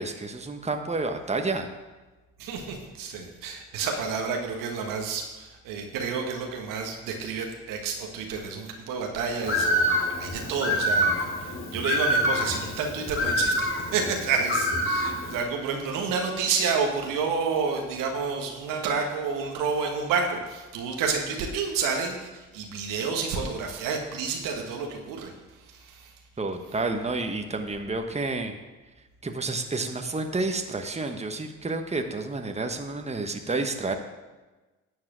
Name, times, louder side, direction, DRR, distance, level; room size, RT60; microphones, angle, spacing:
voice 1, 0.0-1.7 26.4-28.5 29.2-33.9, right 3 dB, 20° right, 5 dB, 1.2 m, -30 dB
voice 2, 2.4-26.1, right 5 dB, 75° right, 2 dB, 1.6 m, -30 dB
Bird, 9.4-15.4, equal, 40° left, 2.4 m, -26 dB
11.0 x 4.8 x 7.5 m, 1.2 s
hypercardioid pair, 50°, 33 cm